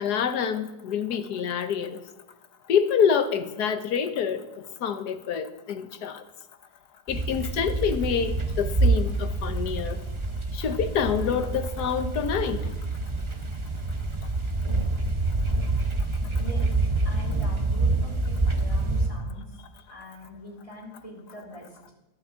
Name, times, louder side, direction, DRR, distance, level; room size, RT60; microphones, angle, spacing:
voice 1, 0.0-2.0 2.7-4.4 4.8-6.2 7.1-10.0 10.5-12.7, left 7 dB, 85° left, 10 dB, 1.6 m, -27 dB
sound 1, 7.1-19.1, right 3 dB, 20° right, 1.1 m, -27 dB
voice 2, 16.4-16.7 17.0-19.6 19.9-21.9, left 1 dB, 20° left, -2 dB, 3.6 m, -43 dB
11.5 x 10.5 x 8.2 m, 1.1 s
omnidirectional pair, 1.7 m